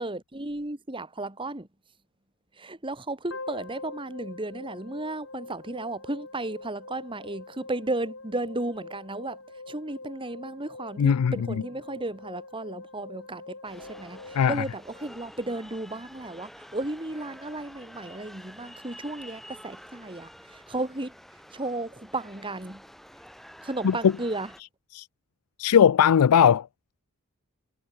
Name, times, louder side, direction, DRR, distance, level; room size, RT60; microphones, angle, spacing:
voice 1, 0.0-1.7 2.5-9.4 9.7-21.1 21.5-22.8 23.6-24.5, right 2 dB, 20° right, 2.0 m, -34 dB
sound 1, 3.3-15.5, left 3 dB, 60° left, 6.5 m, -44 dB
voice 2, 11.0-11.6 14.3-14.6 23.8-24.1 24.9-25.1 25.6-26.7, left 8 dB, 85° left, 0.4 m, -19 dB
sound 2, 13.6-24.6, equal, ahead, 4.3 m, -48 dB
head